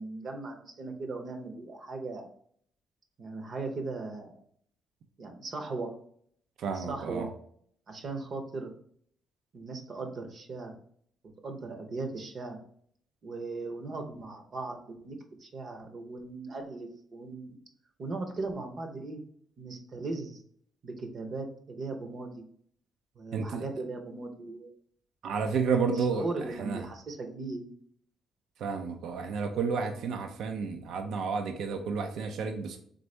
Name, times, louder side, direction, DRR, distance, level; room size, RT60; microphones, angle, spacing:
voice 1, 0.0-2.3 3.2-4.3 5.2-5.9 6.7-7.3 7.9-8.7 9.5-10.8 11.4-12.6 13.2-17.6 18.0-19.2 19.6-20.4 20.8-22.4 23.1-24.7 25.9-27.7, right 3 dB, 50° right, 4 dB, 0.8 m, -38 dB
voice 2, 6.6-7.3 23.3-23.6 25.2-26.2 26.6-26.8 28.6-32.8, right 5 dB, 75° right, 6 dB, 0.5 m, -31 dB
4.0 x 3.5 x 3.3 m, 0.63 s
cardioid pair, 90°, 0 cm